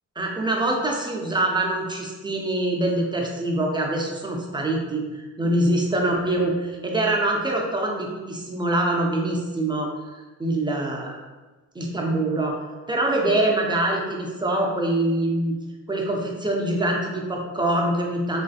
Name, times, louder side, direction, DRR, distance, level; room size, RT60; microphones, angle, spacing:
voice 1, 0.2-11.2 11.8-12.6 12.9-15.5 15.9-18.4, right 1 dB, 15° right, 0 dB, 0.4 m, -24 dB
3.1 x 2.5 x 2.4 m, 1.2 s
cardioid pair, 105°, 31 cm